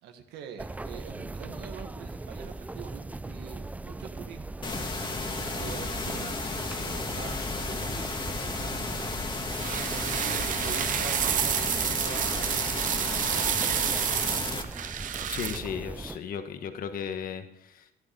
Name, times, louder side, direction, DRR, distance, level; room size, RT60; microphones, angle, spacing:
voice 1, 0.0-5.2 5.6-6.4 6.7-9.2 9.4-14.1, right 8 dB, 90° right, 6 dB, 1.7 m, -45 dB
sound 1, 0.6-16.2, right 2 dB, 10° right, 0.4 m, -40 dB
sound 2, 4.6-14.6, left 3 dB, 30° left, 1.7 m, -33 dB
sound 3, 9.5-15.6, right 10 dB, 50° right, 0.8 m, -29 dB
voice 2, 15.2-17.9, left 7 dB, 55° left, 8 dB, 1.4 m, -35 dB
13.0 x 10.5 x 5.2 m, 0.82 s
cardioid pair, 110°, 17 cm